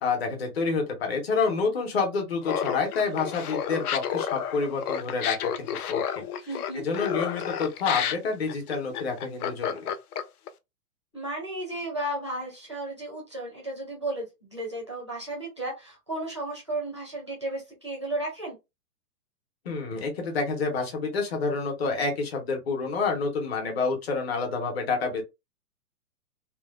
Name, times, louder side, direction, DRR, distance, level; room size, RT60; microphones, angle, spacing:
voice 1, 0.0-6.3 6.7-9.9 19.6-25.2, left 4 dB, 40° left, 0.9 m, -28 dB
Laughter, 2.4-10.5, left 8 dB, 70° left, 0.6 m, -31 dB
voice 2, 6.5-6.8 11.1-18.6, right 1 dB, 20° right, 0.4 m, -34 dB
3.0 x 2.2 x 2.3 m
hypercardioid pair, 170°, 47 cm